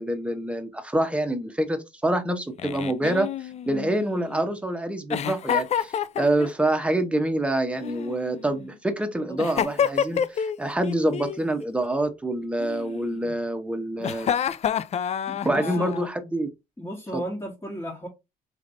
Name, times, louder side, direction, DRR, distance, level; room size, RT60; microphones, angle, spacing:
voice 1, 0.0-14.3 15.4-16.5 17.1-17.2, right 1 dB, 5° right, 0.9 m, -26 dB
Giggle, 2.6-4.4 5.1-6.7 7.8-8.7 9.4-10.6 10.8-11.4 12.6-13.4 14.0-16.1, left 8 dB, 40° left, 0.4 m, -28 dB
voice 2, 15.3-15.9 16.8-18.1, right 1 dB, 20° left, 1.5 m, -34 dB
4.0 x 3.2 x 2.6 m
cardioid pair, 85°, 17 cm